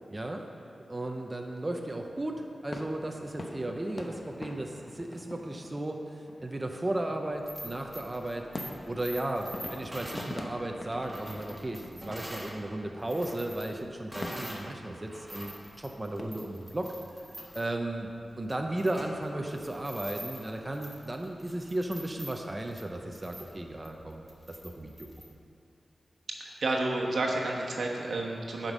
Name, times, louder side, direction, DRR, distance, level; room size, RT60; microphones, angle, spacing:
voice 1, 0.1-0.4 0.9-6.0 6.4-8.5 8.9-16.9 17.5-18.1 18.4-24.9, right 1 dB, 25° right, 2 dB, 0.6 m, -35 dB
sound 1, 2.1-16.2, left 1 dB, 40° left, 0.8 m, -45 dB
sound 2, 7.3-12.6 12.9-14.7 15.0-25.3, equal, 5° right, 1.5 m, -46 dB
voice 2, 26.4-28.7, right 2 dB, 80° right, -1 dB, 1.1 m, -30 dB
9.4 x 5.2 x 6.1 m, 2.5 s
wide cardioid pair, 95°, 0 cm